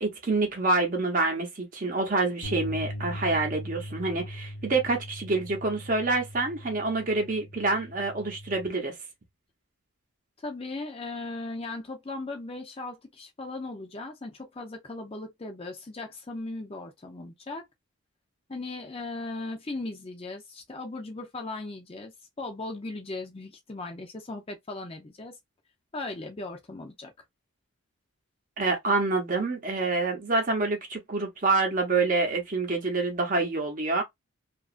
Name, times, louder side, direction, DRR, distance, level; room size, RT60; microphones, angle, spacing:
voice 1, 0.0-8.9 28.6-34.0, right 3 dB, 35° right, 0.8 m, -27 dB
sound 1, 2.4-8.7, equal, 65° left, 0.6 m, -40 dB
voice 2, 10.4-17.6 18.5-22.1 22.4-25.3 25.9-27.1, left 2 dB, 25° left, 0.5 m, -37 dB
2.9 x 2.4 x 2.4 m
head